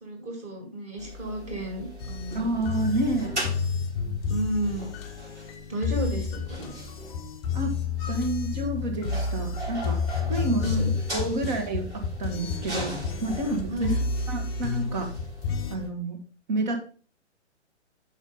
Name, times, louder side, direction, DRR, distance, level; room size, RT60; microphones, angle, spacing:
voice 1, 0.0-2.5 4.3-4.9 5.7-6.7 10.4-11.3 13.7-14.0, right 1 dB, 20° right, 2 dB, 2.3 m, -32 dB
sound 1, 1.0-15.9, equal, 80° right, 4.0 m, -39 dB
sound 2, 2.0-15.8, left 5 dB, 25° left, 0.7 m, -31 dB
voice 2, 2.3-3.4 7.5-7.7 8.1-10.8 11.1-11.9 12.2-12.9 13.2-14.0 14.3-15.1 15.7-16.2 16.5-16.9, right 2 dB, 40° right, 4 dB, 1.8 m, -29 dB
6.1 x 5.5 x 5.2 m, 0.40 s
figure-of-eight pair, 120°, 35 cm